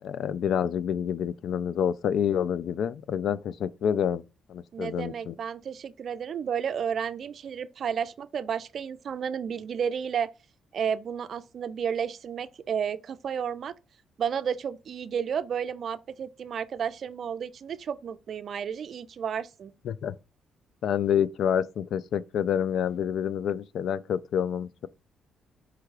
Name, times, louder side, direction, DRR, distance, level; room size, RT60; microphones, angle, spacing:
voice 1, 0.0-4.2 4.5-5.4 19.8-20.1 20.8-24.9, left 8 dB, 70° left, 0.3 m, -28 dB
voice 2, 4.7-10.3 10.7-13.7 14.2-19.7, right 7 dB, 55° right, 0.4 m, -32 dB
4.6 x 2.3 x 4.7 m
cardioid pair, 90°, 0 cm